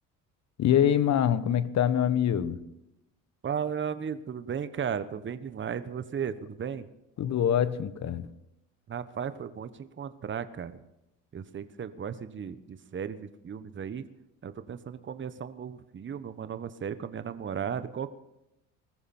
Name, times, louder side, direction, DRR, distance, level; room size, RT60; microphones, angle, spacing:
voice 1, 0.6-2.6 7.2-8.3, left 9 dB, 50° left, 14 dB, 1.3 m, -24 dB
voice 2, 3.4-6.9 8.9-10.8 11.3-14.0 14.4-18.1, right 7 dB, 30° right, 12 dB, 1.2 m, -35 dB
20.5 x 14.0 x 4.4 m, 0.86 s
hypercardioid pair, 75°, 37 cm